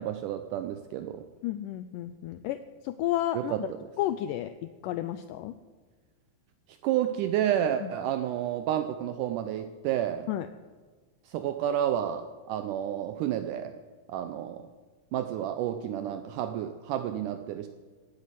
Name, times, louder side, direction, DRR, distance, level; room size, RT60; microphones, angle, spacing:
voice 1, 0.0-1.2 3.3-3.6 6.8-10.3 11.3-13.7 14.1-14.7 15.1-17.7, right 11 dB, 80° right, 9 dB, 1.8 m, -30 dB
voice 2, 1.4-2.6 2.8-3.7 4.0-5.5 7.8-7.9 10.3-10.5, left 13 dB, 85° left, 11 dB, 1.9 m, -32 dB
16.5 x 8.5 x 7.6 m, 1.4 s
omnidirectional pair, 4.3 m